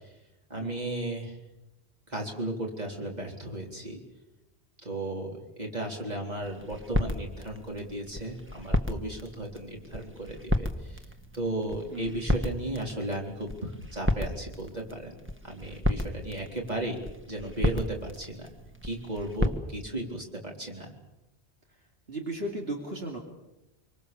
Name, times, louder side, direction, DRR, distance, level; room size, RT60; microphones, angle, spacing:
voice 1, 0.5-1.4 2.1-4.0 4.8-11.0 11.3-15.1 15.4-17.0 17.3-18.5 18.8-20.9, right 1 dB, 40° right, 0 dB, 4.2 m, -35 dB
sound 1, 6.4-19.6, left 1 dB, 10° right, 1.3 m, -33 dB
voice 2, 22.1-23.2, right 1 dB, 65° right, 0 dB, 3.0 m, -35 dB
26.0 x 24.5 x 7.1 m, 0.98 s
omnidirectional pair, 1.1 m